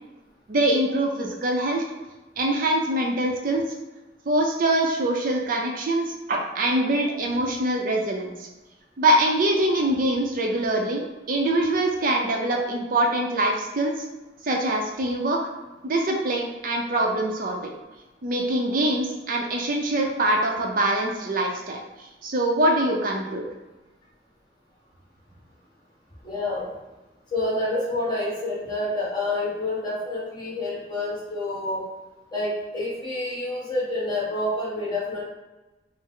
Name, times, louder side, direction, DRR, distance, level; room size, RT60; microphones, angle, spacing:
voice 1, 0.5-1.8 2.4-3.6 4.3-8.5 9.0-13.9 14.4-15.4 15.8-17.7 18.2-23.4, right 1 dB, 50° right, 1 dB, 0.5 m, -24 dB
voice 2, 26.2-26.7 27.3-31.8 32.3-35.2, left 2 dB, 25° left, -6 dB, 1.4 m, -28 dB
5.2 x 2.0 x 3.7 m, 1.1 s
head